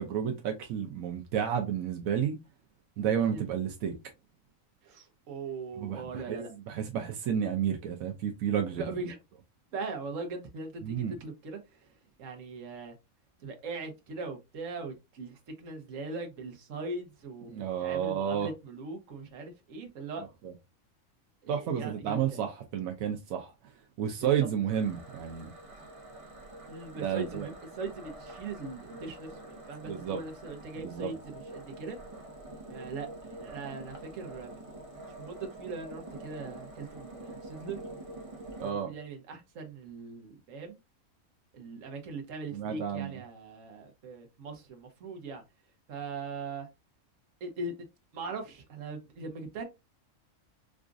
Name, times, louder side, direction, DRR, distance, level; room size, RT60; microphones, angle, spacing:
voice 1, 0.0-2.4 3.0-3.9 5.8-8.8 10.8-11.2 17.5-18.5 20.4-20.5 21.5-23.5 24.0-25.5 27.0-27.5 29.8-30.2 30.8-31.1 38.6-38.9 42.5-43.2, right 8 dB, 90° right, 1.1 m, -31 dB
voice 2, 4.8-6.5 8.7-9.2 9.7-11.9 12.2-13.0 13.4-20.2 21.4-22.4 24.2-24.3 26.7-32.0 32.7-37.8 38.6-40.8 41.5-45.4 45.9-46.7 47.4-47.7 48.1-49.6, right 3 dB, 70° right, 1.3 m, -40 dB
sound 1, 24.7-38.7, right 2 dB, 30° right, 0.8 m, -46 dB
4.9 x 2.4 x 2.5 m
omnidirectional pair, 1.4 m